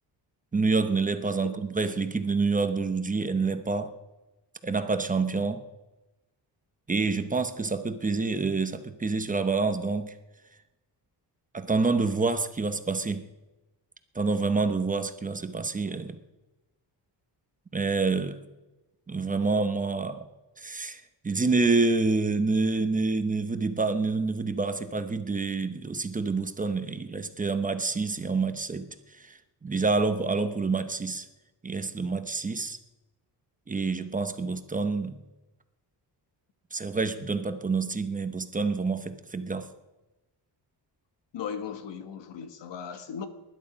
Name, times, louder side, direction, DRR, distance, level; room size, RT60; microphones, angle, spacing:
voice 1, 0.5-3.9 4.6-5.6 6.9-10.1 11.5-13.2 14.1-16.2 17.7-18.4 19.1-20.2 20.6-28.9 29.1-31.3 31.6-32.8 33.7-35.2 36.7-39.7, right 4 dB, 20° right, 0.8 m, -27 dB
voice 2, 41.3-43.3, left 7 dB, 85° left, 1.6 m, -37 dB
20.0 x 11.0 x 5.2 m
wide cardioid pair, 175°, 42 cm